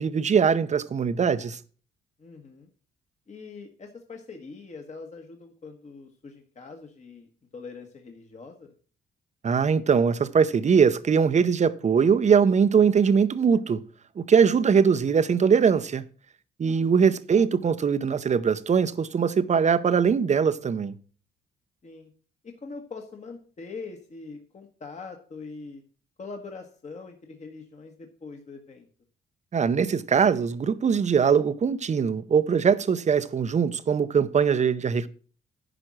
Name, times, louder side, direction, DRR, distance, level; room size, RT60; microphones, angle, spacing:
voice 1, 0.0-1.6 9.4-13.8 14.2-16.0 16.6-20.9 29.5-35.1, right 6 dB, 35° right, 0.7 m, -21 dB
voice 2, 2.2-2.7 3.3-8.7 16.7-17.2 21.8-22.1 22.4-25.8 26.2-28.9, left 4 dB, 35° left, 1.4 m, -43 dB
10.0 x 5.3 x 6.1 m
cardioid pair, 90°, 20 cm